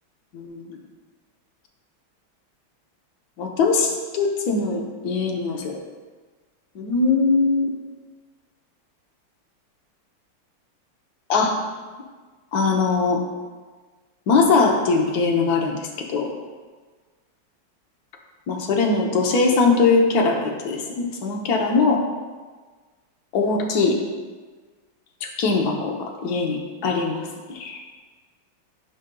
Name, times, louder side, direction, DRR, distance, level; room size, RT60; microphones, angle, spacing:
voice 1, 0.3-0.8 3.4-5.8 6.7-7.7 11.3-11.5 12.5-13.2 14.3-15.8 16.1-16.3 18.5-22.0 23.3-24.0 25.2-26.6 26.8-27.8, left 4 dB, 60° left, 1 dB, 1.2 m, -21 dB
10.5 x 5.1 x 2.2 m, 1.4 s
omnidirectional pair, 2.3 m